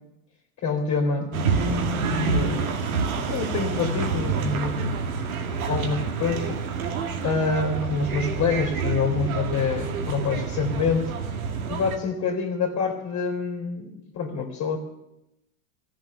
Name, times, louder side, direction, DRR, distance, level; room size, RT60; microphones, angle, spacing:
voice 1, 0.6-1.9 2.3-2.7 3.2-4.9 5.7-6.6 7.2-11.1 11.7-14.8, left 5 dB, 35° left, 0 dB, 3.3 m, -26 dB
sound 1, 1.3-12.0, right 5 dB, 80° right, 2.2 m, -27 dB
15.0 x 7.6 x 9.7 m, 0.90 s
hypercardioid pair, 115°, 41 cm